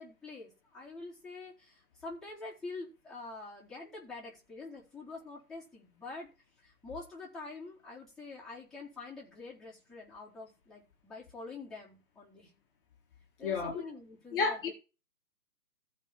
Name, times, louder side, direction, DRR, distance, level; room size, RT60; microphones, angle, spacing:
voice 1, 0.0-6.3 6.6-12.5 13.4-14.7, left 3 dB, ahead, 4.1 m, -46 dB
voice 2, 13.4-13.8 14.3-14.7, left 4 dB, 35° left, 1.8 m, -31 dB
14.5 x 5.4 x 4.6 m
hypercardioid pair, 160°, 48 cm